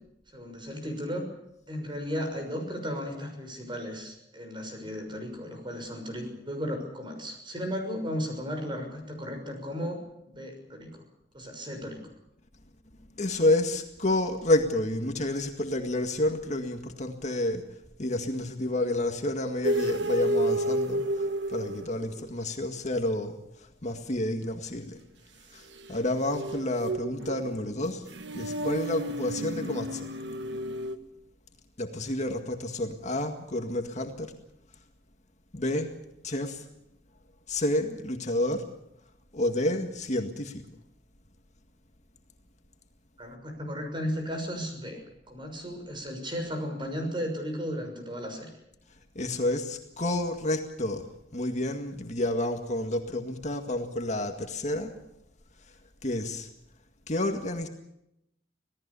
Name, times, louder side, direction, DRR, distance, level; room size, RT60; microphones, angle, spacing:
voice 1, 0.3-1.2 1.7-10.0 10.3-10.9 11.3-12.0 43.2-48.5, equal, 30° right, 4 dB, 6.2 m, -35 dB
voice 2, 13.2-17.7 18.0-25.0 25.5-28.1 28.3-30.1 31.8-34.3 35.5-35.9 36.2-36.7 37.5-38.7 39.3-40.6 49.2-54.9 56.0-56.5 57.1-57.7, left 1 dB, 40° left, 5 dB, 2.0 m, -29 dB
sound 1, 19.6-22.3 25.8-31.0, right 1 dB, 80° right, 1.4 m, -31 dB
26.5 x 18.0 x 7.0 m, 0.82 s
head